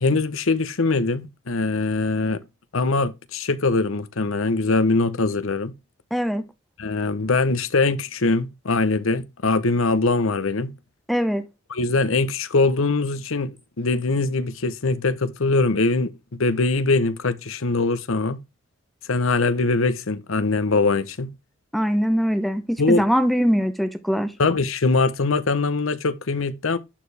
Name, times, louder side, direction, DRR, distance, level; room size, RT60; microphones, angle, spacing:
voice 1, 0.0-2.4 2.7-5.7 6.8-10.7 11.7-18.4 19.1-21.3 22.8-23.0 24.4-26.8, left 3 dB, 80° left, 0.8 m, -22 dB
voice 2, 6.1-6.4 11.1-11.5 21.7-24.3, equal, ahead, 0.7 m, -22 dB
11.0 x 4.5 x 3.4 m
head